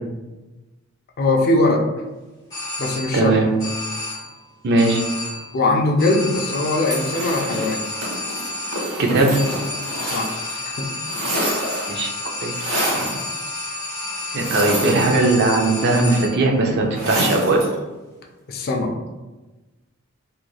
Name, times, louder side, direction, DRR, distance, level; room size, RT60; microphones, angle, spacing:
voice 1, 1.2-1.8 2.8-3.4 5.5-7.8 10.0-10.3 10.8-10.9 18.5-18.9, left 2 dB, 45° left, 2 dB, 0.3 m, -20 dB
sound 1, 2.5-3.3 3.6-4.4 4.8-5.6 6.0-16.5, left 2 dB, 15° left, 1.1 m, -30 dB
voice 2, 3.1-3.5 4.6-5.0 9.0-9.4 11.9-12.1 12.4-12.5 12.9-13.0 14.3-17.6, right 2 dB, 50° right, 1 dB, 0.4 m, -18 dB
sound 2, 6.8-10.6 10.8-12.0 12.5-13.2 14.3-15.5 16.9-17.7, right 1 dB, 80° right, 0.9 m, -27 dB
3.0 x 2.4 x 2.3 m, 1.1 s
head